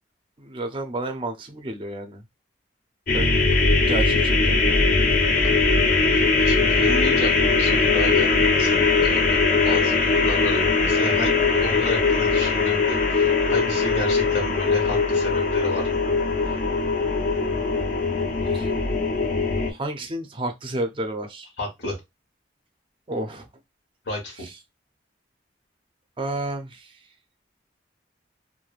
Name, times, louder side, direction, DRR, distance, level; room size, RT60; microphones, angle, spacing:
voice 1, 0.4-2.2 3.1-3.4 3.8-4.8 17.5-17.9 18.5-18.7 19.7-21.5 23.1-23.5 24.4-24.5 26.2-26.9, right 1 dB, 30° right, 0.4 m, -31 dB
sound 1, 3.1-19.7, left 3 dB, 45° left, 0.5 m, -21 dB
voice 2, 5.4-5.8 6.1-16.0 21.6-22.0 24.0-24.5, left 1 dB, 70° left, 1.3 m, -31 dB
3.2 x 2.1 x 2.3 m
head